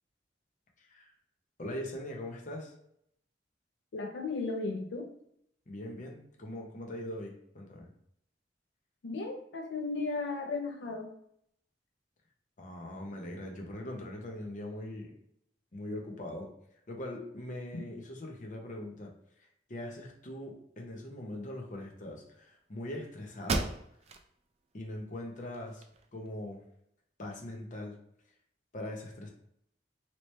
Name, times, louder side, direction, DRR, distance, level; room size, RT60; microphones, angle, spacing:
voice 1, 0.8-1.1 1.6-2.7 5.7-7.9 12.6-15.1 15.7-16.5 16.9-19.1 19.7-23.7 24.7-25.8 26.1-26.6 27.2-27.9 28.7-29.3, left 1 dB, 45° left, 1 dB, 0.8 m, -41 dB
voice 2, 3.9-5.1 9.0-11.1, left 3 dB, 80° left, 2 dB, 0.4 m, -35 dB
sound 1, 22.9-23.0 23.4-24.3 24.7-24.8 25.4-26.3, right 3 dB, 35° right, 0.3 m, -35 dB
3.0 x 2.9 x 3.2 m, 0.73 s
head